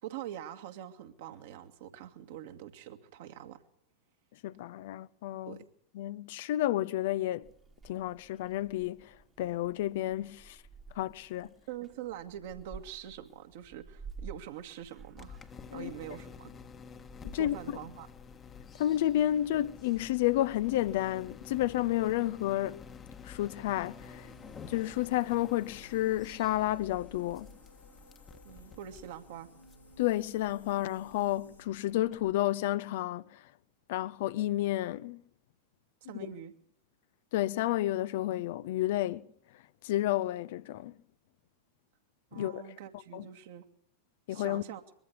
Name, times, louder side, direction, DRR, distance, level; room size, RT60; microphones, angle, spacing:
voice 1, 0.0-3.6 5.5-5.6 11.7-15.4 15.7-16.5 17.3-18.1 28.4-29.5 36.1-36.5 42.3-43.6 44.3-44.8, right 11 dB, 55° right, 2.1 m, -44 dB
voice 2, 4.4-5.6 5.9-7.5 7.8-10.6 10.9-11.5 15.7-15.9 17.2-17.6 18.8-22.8 23.2-24.3 24.7-27.5 30.0-33.5 33.9-35.2 36.1-36.3 37.3-39.3 39.5-40.9 42.3-42.7 43.1-43.2 44.3-44.6, left 14 dB, 55° left, 0.7 m, -31 dB
Purr / Meow, 7.4-16.2, right 5 dB, 15° right, 1.6 m, -52 dB
sound 1, 15.2-32.4, left 5 dB, 20° left, 1.4 m, -50 dB
sound 2, 23.8-31.7, equal, 90° left, 2.7 m, -57 dB
22.5 x 14.0 x 8.5 m
figure-of-eight pair, 90°, 0 cm